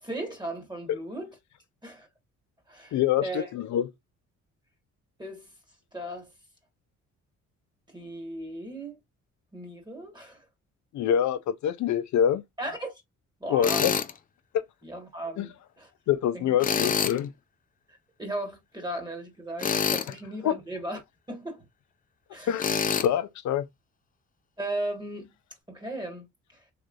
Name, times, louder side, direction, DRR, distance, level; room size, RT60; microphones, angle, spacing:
voice 1, 0.0-1.4 1.8-2.1 2.7-2.9 3.2-3.5 5.2-5.5 5.9-6.3 7.9-9.0 9.5-10.4 12.6-13.0 13.4-13.8 14.8-15.9 16.3-16.6 17.9-21.0 21.3-21.6 22.3-22.7 24.6-25.3 25.7-26.6, right 1 dB, 15° right, 1.5 m, -36 dB
voice 2, 2.9-3.9 10.9-12.4 13.5-13.9 14.5-14.6 15.4-15.5 16.1-17.3 20.4-20.6 22.5-22.7 23.0-23.7, left 9 dB, 70° left, 0.6 m, -25 dB
Tools, 13.6-14.1 16.6-17.2 19.6-20.1 22.6-23.1, left 6 dB, 30° left, 0.5 m, -26 dB
3.2 x 3.1 x 2.5 m
cardioid pair, 90°, 30 cm